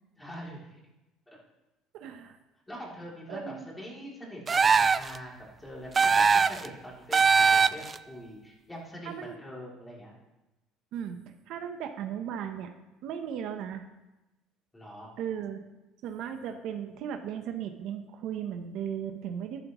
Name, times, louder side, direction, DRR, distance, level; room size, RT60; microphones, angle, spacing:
voice 1, 0.2-0.7 1.3-1.4 2.7-10.1 14.7-15.1, equal, 10° left, -4 dB, 3.1 m, -43 dB
voice 2, 1.9-2.4 3.3-3.7 9.0-9.3 10.9-11.2 11.5-12.7 13.0-13.8 15.2-15.6 16.0-19.6, right 8 dB, 65° right, 6 dB, 0.9 m, -36 dB
sound 1, 4.5-5.2 5.9-6.7 7.1-8.0, right 5 dB, 25° right, 0.3 m, -21 dB
11.5 x 11.0 x 3.1 m, 0.99 s
cardioid pair, 120°, 0 cm